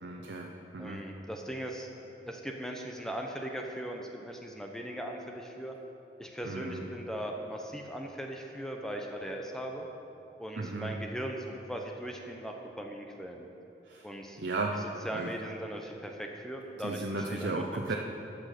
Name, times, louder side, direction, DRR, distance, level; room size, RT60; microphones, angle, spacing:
voice 1, 0.0-1.0 6.4-6.8 10.6-10.9 13.8-14.1 14.4-14.8 15.1-15.3 16.8-18.0, right 3 dB, 80° right, 0 dB, 0.8 m, -35 dB
voice 2, 0.8-1.9 2.3-5.7 6.2-9.9 10.4-13.5 14.0-14.4 15.0-17.9, right 1 dB, 5° left, 1 dB, 0.8 m, -39 dB
14.0 x 6.2 x 6.7 m, 2.8 s
head